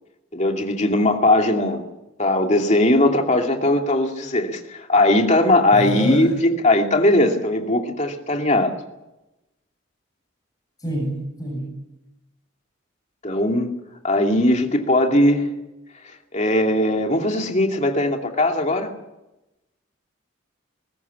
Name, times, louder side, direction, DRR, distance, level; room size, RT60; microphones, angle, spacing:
voice 1, 0.3-1.8 2.2-8.8 13.2-13.7 14.0-15.5 16.3-18.9, left 1 dB, 35° left, 3 dB, 2.6 m, -19 dB
voice 2, 5.7-6.3 10.8-11.7, equal, 20° left, -1 dB, 7.5 m, -27 dB
21.0 x 18.0 x 8.5 m, 0.96 s
head